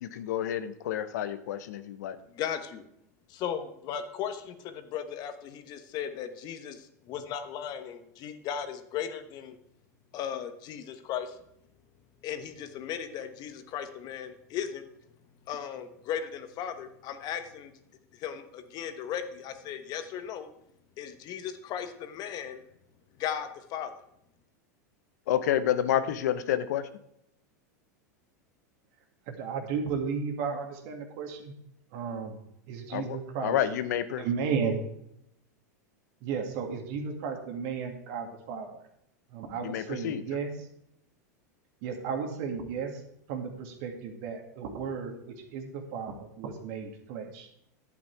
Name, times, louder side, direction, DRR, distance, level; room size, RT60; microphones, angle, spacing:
voice 1, 0.0-2.2 25.3-26.9 32.9-34.2 39.6-40.2, left 10 dB, 70° left, 12 dB, 0.8 m, -29 dB
voice 2, 2.3-2.8 3.3-9.6 10.1-11.4 12.2-14.8 15.5-17.7 18.1-20.5 21.0-22.6 23.2-23.9, left 8 dB, 45° left, 9 dB, 1.2 m, -36 dB
voice 3, 29.3-31.5 31.9-32.4 32.7-33.6 34.2-34.8 36.2-38.7 39.3-40.5 41.8-43.0 43.3-47.5, right 6 dB, 60° right, 4 dB, 2.2 m, -34 dB
11.0 x 8.6 x 4.6 m, 0.79 s
hypercardioid pair, 100°, 9 cm